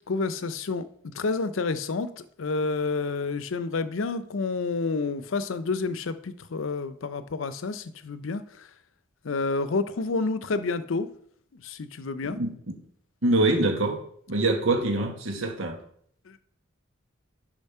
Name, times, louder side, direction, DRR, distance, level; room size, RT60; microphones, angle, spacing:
voice 1, 0.1-0.9 1.1-8.7 9.2-11.1 11.5-12.4 16.3-16.4, left 3 dB, 85° left, 13 dB, 0.6 m, -29 dB
voice 2, 13.2-14.0 14.3-15.7, right 2 dB, 90° right, 3 dB, 1.5 m, -24 dB
7.1 x 5.1 x 5.5 m, 0.65 s
head